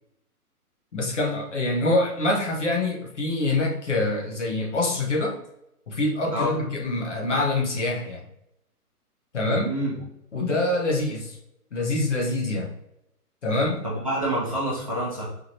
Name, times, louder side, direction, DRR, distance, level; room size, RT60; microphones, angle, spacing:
voice 1, 0.9-5.4 5.9-8.3 9.3-9.7 10.3-11.4 11.7-12.7 13.4-13.8, left 2 dB, 50° left, 0 dB, 1.1 m, -25 dB
voice 2, 9.5-10.0 13.8-15.5, right 1 dB, 25° right, -7 dB, 0.7 m, -28 dB
4.8 x 3.1 x 2.8 m, 0.82 s
hypercardioid pair, 180°, 46 cm